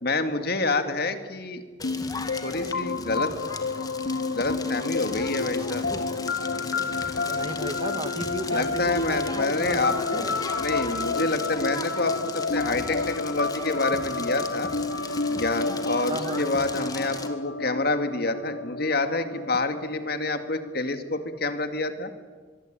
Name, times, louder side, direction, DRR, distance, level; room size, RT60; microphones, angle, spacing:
voice 1, 0.0-1.6 2.4-3.3 4.3-5.9 8.5-10.2 10.6-14.7 15.3-22.1, left 2 dB, 55° left, 9 dB, 2.2 m, -28 dB
sound 1, 1.8-21.4, left 4 dB, 75° left, 0.9 m, -30 dB
Crackle, 1.8-17.3, left 3 dB, 20° left, 2.2 m, -37 dB
voice 2, 7.3-10.4 16.1-16.4, right 1 dB, 30° right, 10 dB, 1.7 m, -35 dB
sound 2, 8.5-9.8 10.5-11.8 12.5-13.6, equal, 10° right, 5.5 m, -51 dB
24.0 x 23.5 x 8.9 m, 1.5 s
head